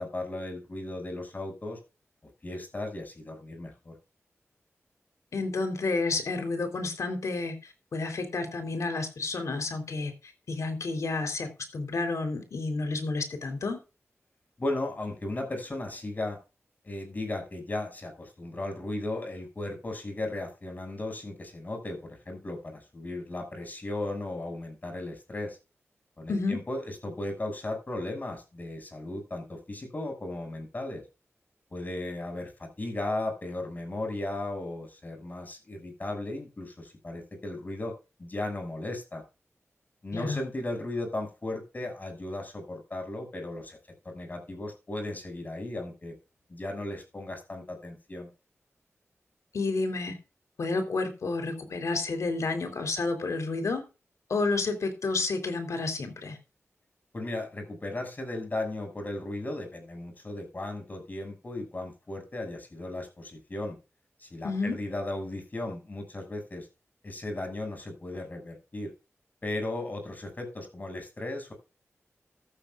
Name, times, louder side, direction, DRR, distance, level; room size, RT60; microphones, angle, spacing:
voice 1, 0.0-1.8 2.4-3.9 14.6-16.4 16.8-25.6 26.2-31.0 31.7-37.9 38.2-39.2 40.0-43.8 44.0-46.1 46.5-48.3 57.1-63.8 64.2-66.7 67.0-68.9 69.4-71.5, left 2 dB, 35° left, 4 dB, 6.5 m, -36 dB
voice 2, 5.3-13.8 26.3-26.6 40.1-40.4 49.5-50.2 50.6-53.9 54.3-56.4 64.4-64.8, left 3 dB, 85° left, 6 dB, 3.7 m, -30 dB
14.5 x 13.5 x 2.5 m, 0.30 s
wide cardioid pair, 110°, 5 cm